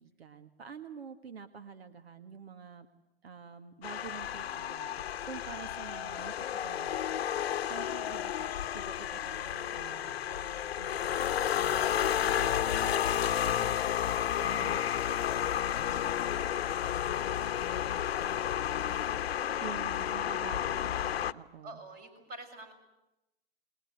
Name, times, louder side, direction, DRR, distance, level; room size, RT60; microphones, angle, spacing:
voice 1, 0.0-2.9 3.2-13.8 14.4-16.1 19.6-21.8, right 5 dB, 80° right, 10 dB, 1.8 m, -48 dB
sound 1, 3.8-21.3, left 10 dB, 80° left, 0.9 m, -32 dB
Wind instrument woodwind instrument, 13.3-19.2, left 18 dB, 40° left, 1.1 m, -45 dB
voice 2, 19.3-19.7 21.6-22.7, right 2 dB, 30° right, 7 dB, 6.4 m, -47 dB
29.0 x 21.0 x 8.0 m, 0.93 s
hypercardioid pair, 125°, 31 cm